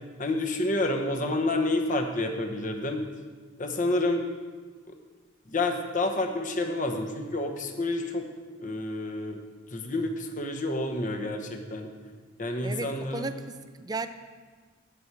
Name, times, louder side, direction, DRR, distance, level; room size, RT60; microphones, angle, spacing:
voice 1, 0.2-3.0 3.6-4.2 5.5-8.3 8.6-9.4 9.7-11.9 12.4-13.3, left 2 dB, 40° left, 4 dB, 1.1 m, -29 dB
voice 2, 12.6-14.1, right 2 dB, 20° right, 10 dB, 0.4 m, -35 dB
8.7 x 6.2 x 8.2 m, 1.5 s
head